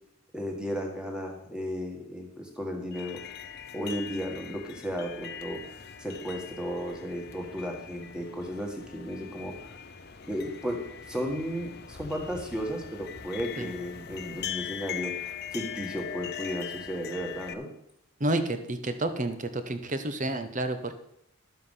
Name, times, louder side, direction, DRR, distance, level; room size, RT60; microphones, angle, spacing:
voice 1, 0.3-3.2 3.7-5.6 6.0-9.6 10.3-17.7, equal, 5° right, 1 dB, 1.9 m, -34 dB
sound 1, 2.9-17.5, left 8 dB, 45° left, 0.7 m, -41 dB
voice 2, 18.2-20.9, right 2 dB, 35° right, 9 dB, 1.0 m, -30 dB
12.0 x 7.5 x 5.6 m, 0.78 s
head